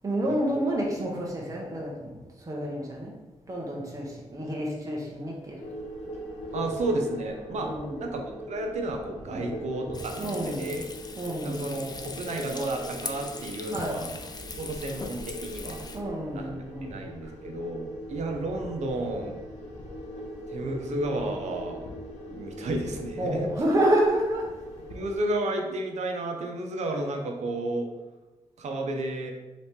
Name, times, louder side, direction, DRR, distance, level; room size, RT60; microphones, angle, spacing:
voice 1, 0.0-3.2 3.5-5.6 7.6-8.0 9.3-9.5 10.2-10.8 11.2-11.6 13.7-14.0 15.9-17.3 23.2-24.5, right 1 dB, 30° right, -3 dB, 1.0 m, -29 dB
sound 1, 5.6-25.2, equal, 85° left, 1.0 m, -41 dB
voice 2, 6.5-7.7 8.0-10.8 11.4-14.2 14.6-15.8 16.3-16.6 16.9-19.4 20.5-21.8 22.3-23.4 24.9-27.9 28.6-29.3, right 1 dB, 75° right, 3 dB, 0.7 m, -32 dB
Frying (food), 9.9-16.0, left 4 dB, 35° left, 0.5 m, -40 dB
3.3 x 3.1 x 4.3 m, 1.1 s
cardioid pair, 65°, 12 cm